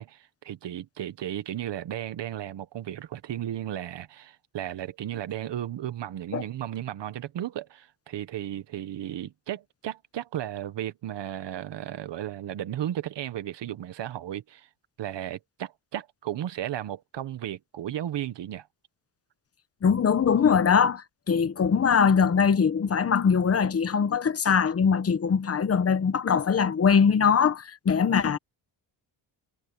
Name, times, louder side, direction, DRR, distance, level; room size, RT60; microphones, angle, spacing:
voice 1, 0.0-14.7 15.0-18.7, right 11 dB, 70° right, 1.4 m, -34 dB
voice 2, 19.8-28.4, left 6 dB, 30° left, 1.0 m, -22 dB
wide cardioid pair, 155°, 45 cm